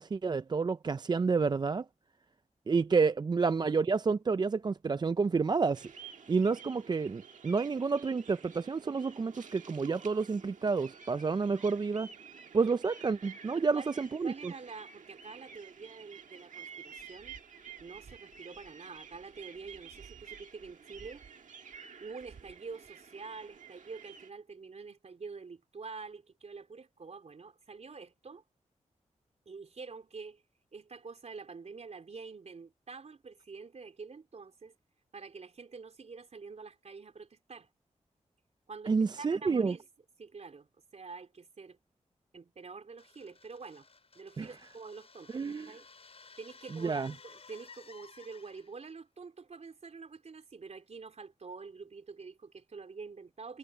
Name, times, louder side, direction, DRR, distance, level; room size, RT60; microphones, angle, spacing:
voice 1, 0.0-1.8 2.7-5.9 6.3-12.1 12.5-14.5 38.9-39.7 44.4-44.5 45.3-45.7 46.7-47.1, right 4 dB, 35° right, 0.3 m, -29 dB
voice 2, 2.8-3.1 13.5-13.9 14.2-17.4 17.8-21.5 22.0-28.4 29.5-30.4 30.7-34.8 35.1-37.7 38.7-39.9 40.2-41.8 42.3-43.9 44.2-45.9 46.4-53.6, right 4 dB, 60° right, 3.7 m, -47 dB
sound 1, 5.7-24.3, right 6 dB, 85° right, 1.5 m, -51 dB
sound 2, 43.0-48.9, left 4 dB, 55° left, 4.6 m, -56 dB
wide cardioid pair, 95°, 13 cm